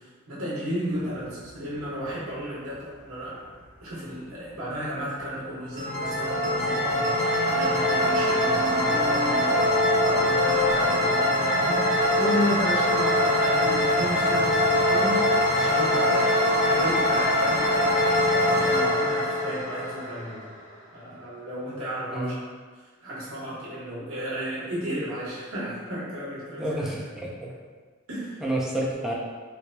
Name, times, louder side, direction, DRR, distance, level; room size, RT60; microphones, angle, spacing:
voice 1, 0.0-3.5 3.8-20.4 20.9-22.3 22.7-26.9 28.1-28.4, equal, 80° right, -8 dB, 1.3 m, -33 dB
sound 1, 0.8-10.7, left 3 dB, 40° left, 0.6 m, -35 dB
sound 2, 5.7-20.5, left 1 dB, 35° right, 1.1 m, -23 dB
voice 2, 26.6-27.5 28.4-29.1, right 1 dB, ahead, -5 dB, 0.5 m, -29 dB
3.7 x 3.1 x 2.2 m, 1.5 s
head